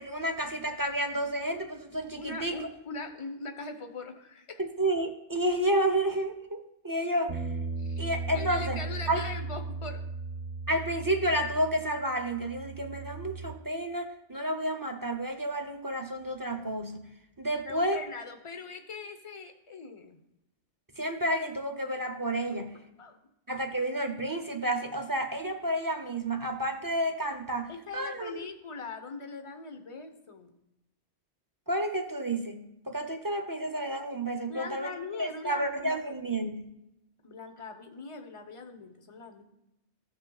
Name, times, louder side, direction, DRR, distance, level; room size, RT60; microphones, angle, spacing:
voice 1, 0.0-2.6 4.6-7.4 8.0-8.8 9.1-9.3 10.7-17.1 17.4-18.0 21.0-22.7 23.5-28.4 31.7-34.9 35.2-36.7, right 1 dB, 20° right, 5 dB, 0.6 m, -31 dB
voice 2, 2.2-4.6 7.8-10.0 17.7-20.2 22.5-22.6 23.0-23.2 27.7-30.5 34.5-36.0 37.2-39.4, left 3 dB, 30° left, 6 dB, 0.8 m, -41 dB
sound 1, 7.3-13.5, right 4 dB, 40° right, 1.0 m, -37 dB
15.0 x 6.5 x 2.3 m, 0.88 s
omnidirectional pair, 1.2 m